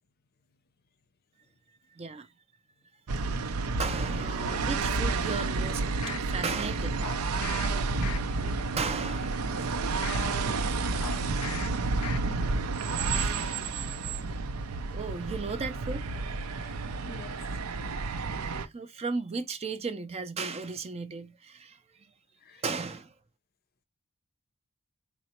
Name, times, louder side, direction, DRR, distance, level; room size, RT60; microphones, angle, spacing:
voice 1, 1.9-2.3 3.4-7.0 7.4-7.7 8.8-9.7 13.1-13.6 14.9-16.2 18.6-21.8 22.5-23.1, right 4 dB, 30° right, 0.4 m, -36 dB
sound 1, 3.1-18.7, right 3 dB, 90° right, 0.5 m, -30 dB
sound 2, 5.0-6.3 7.0-7.7 8.0-8.5 9.0-10.3 11.0-11.7 12.0-12.5 12.9-13.0, left 9 dB, 90° left, 0.4 m, -42 dB
voice 2, 10.0-10.7 11.0-11.2 16.6-16.8 17.0-17.5 17.7-18.1 22.4-22.6, left 4 dB, 45° left, 0.6 m, -47 dB
3.8 x 2.1 x 4.3 m
head